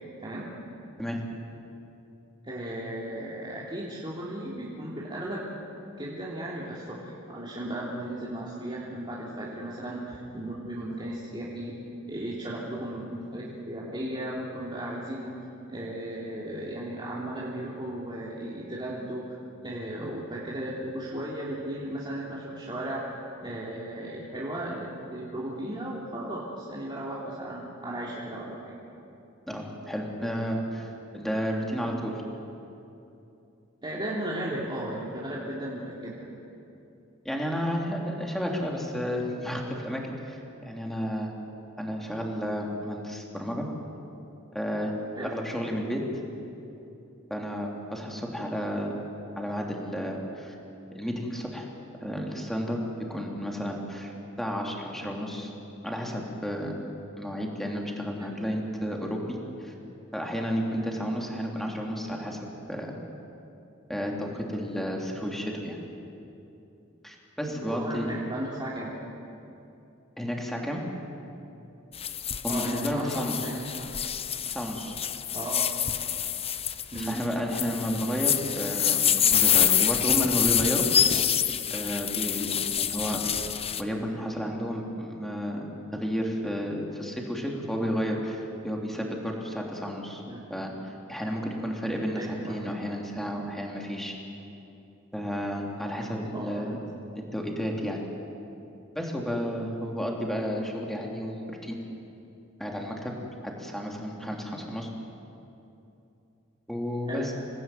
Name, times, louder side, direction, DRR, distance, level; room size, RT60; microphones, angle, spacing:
voice 1, 0.2-0.5 2.4-5.4 6.0-15.4 15.7-19.4 19.6-23.1 23.4-28.7 33.8-36.2 45.1-45.3 58.2-58.3 60.8-60.9 67.5-69.0 72.5-73.9 75.3-75.7 76.9-77.2 90.3-90.4 92.2-92.6 96.3-96.8 107.1-107.3, right 1 dB, 25° right, -6 dB, 3.3 m, -35 dB
voice 2, 29.5-32.2 37.2-41.3 41.8-43.7 44.5-44.9 45.2-46.0 47.3-48.9 49.4-50.5 50.9-51.7 52.0-52.8 53.1-55.5 55.8-56.8 57.2-59.4 59.6-59.7 60.1-62.9 63.9-65.8 67.0-68.1 70.2-70.8 72.4-73.5 74.5-74.9 77.0-81.2 81.7-83.2 83.8-85.7 85.9-90.2 90.5-94.1 95.1-96.8 97.1-98.0 98.9-101.8 102.6-103.1 103.4-104.9 106.7-107.3, equal, ahead, 0 dB, 3.4 m, -32 dB
sound 1, 71.9-83.8, left 9 dB, 30° left, 0.8 m, -26 dB
27.0 x 18.5 x 9.3 m, 2.8 s
head